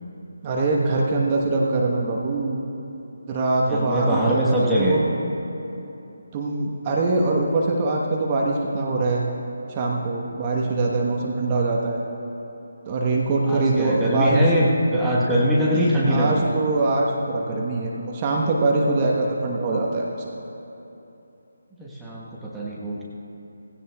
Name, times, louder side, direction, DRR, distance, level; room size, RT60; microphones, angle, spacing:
voice 1, 0.4-2.6 3.3-5.1 6.3-9.2 9.7-12.0 12.9-14.4 15.7-20.3, right 2 dB, 25° right, -2 dB, 1.2 m, -23 dB
voice 2, 3.7-5.0 13.4-16.5 21.8-23.0, equal, 5° right, -7 dB, 1.2 m, -22 dB
18.5 x 16.0 x 2.3 m, 2.9 s
figure-of-eight pair, 150°, 0 cm